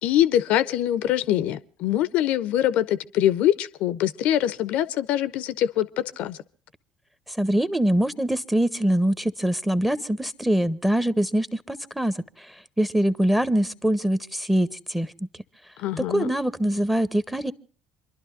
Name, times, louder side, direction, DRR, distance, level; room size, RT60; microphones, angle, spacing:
voice 1, 0.0-6.4 15.8-16.3, left 12 dB, 60° left, 0.6 m, -23 dB
voice 2, 7.3-12.5 12.8-15.1 16.1-17.5, right 1 dB, 5° right, 0.9 m, -23 dB
27.5 x 12.0 x 2.6 m
hypercardioid pair, 60°, 3 cm